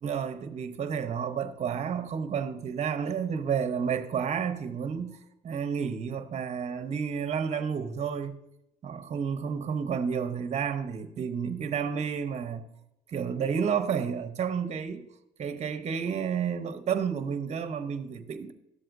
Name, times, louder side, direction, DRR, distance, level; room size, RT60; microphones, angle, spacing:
voice 1, 0.0-5.2 5.4-8.4 8.8-12.6 13.1-15.1 15.4-18.5, right 7 dB, 40° right, 0.9 m, -31 dB
12.5 x 7.6 x 2.6 m
cardioid pair, 110°, 17 cm